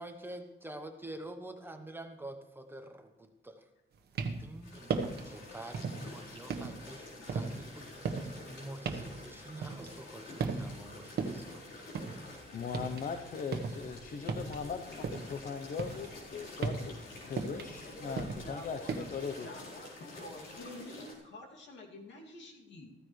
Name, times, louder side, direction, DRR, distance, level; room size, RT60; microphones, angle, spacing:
voice 1, 0.0-3.6 4.4-8.1 8.5-11.7, right 1 dB, 10° right, 5 dB, 0.9 m, -47 dB
sound 1, 3.9-4.5 4.9-5.3 5.7-6.1 6.5-10.1 10.4-10.9 11.2-13.1 13.4-15.4 15.7-19.0, right 5 dB, 55° right, 1.3 m, -37 dB
sound 2, 4.6-21.1, left 2 dB, 90° left, 4.1 m, -49 dB
voice 2, 12.5-16.9 17.2-19.5, left 6 dB, 45° left, 8 dB, 0.8 m, -39 dB
voice 3, 17.8-18.9 19.4-22.9, left 1 dB, 70° left, 0 dB, 2.5 m, -48 dB
14.5 x 14.5 x 3.2 m, 1.0 s
cardioid pair, 155°, 20 cm